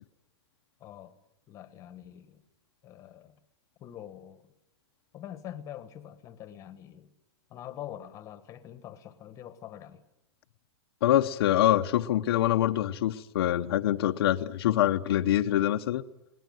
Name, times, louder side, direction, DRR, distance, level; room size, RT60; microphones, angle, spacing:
voice 1, 0.8-1.2 1.5-2.4 2.8-3.4 3.8-4.5 5.1-7.1 7.5-10.0, left 11 dB, 20° left, 1.4 m, -44 dB
voice 2, 11.0-16.0, left 12 dB, 60° left, 0.8 m, -25 dB
22.0 x 18.5 x 9.2 m
supercardioid pair, 160°, 15 cm